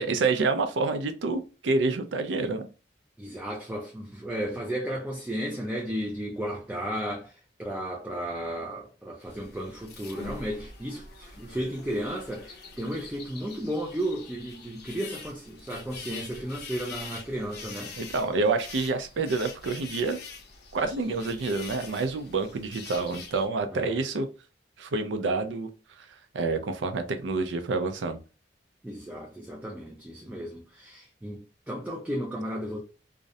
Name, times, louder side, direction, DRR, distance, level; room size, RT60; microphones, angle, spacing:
voice 1, 0.0-2.7 18.0-20.2 20.7-24.3 24.8-25.7 26.0-26.1 26.3-28.2, right 3 dB, 80° right, 0.4 m, -28 dB
voice 2, 3.2-18.0 23.7-24.0 28.8-32.8, equal, 10° right, 0.3 m, -34 dB
sound 1, 9.3-23.5, left 4 dB, 60° left, 0.6 m, -44 dB
2.4 x 2.0 x 2.6 m
head